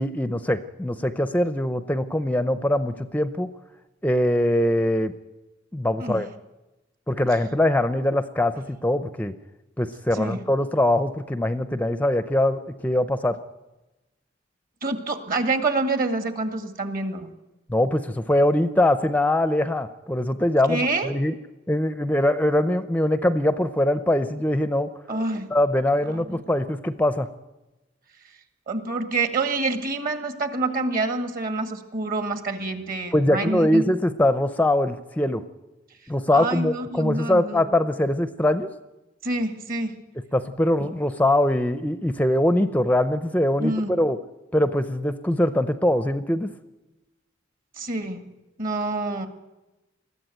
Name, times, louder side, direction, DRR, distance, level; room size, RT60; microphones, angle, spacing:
voice 1, 0.0-3.5 4.0-5.1 5.7-6.3 7.1-9.3 9.8-13.4 17.7-21.4 21.7-24.9 25.5-27.3 33.1-35.4 36.1-38.7 40.3-44.2 44.5-46.5, left 1 dB, 10° left, 11 dB, 0.6 m, -22 dB
voice 2, 10.1-10.5 14.8-17.3 20.7-21.1 25.1-25.5 26.1-26.4 28.7-33.8 36.3-37.8 39.2-40.0 40.8-40.9 43.6-43.9 47.8-48.3 48.6-49.3, right 2 dB, 45° right, 7 dB, 2.0 m, -27 dB
21.0 x 14.0 x 9.1 m, 1.1 s
head